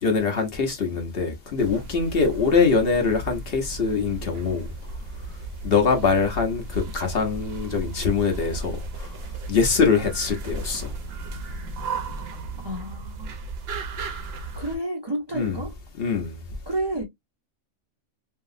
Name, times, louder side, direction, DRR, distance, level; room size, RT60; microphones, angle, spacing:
voice 1, 0.0-10.9 15.3-15.6 16.0-16.4, left 5 dB, 55° left, 0.9 m, -24 dB
sound 1, 1.6-14.8, right 3 dB, 60° right, 0.8 m, -35 dB
voice 2, 12.6-13.4 14.6-15.7 16.7-17.0, right 1 dB, 35° right, 0.4 m, -30 dB
2.9 x 2.7 x 2.4 m
omnidirectional pair, 1.3 m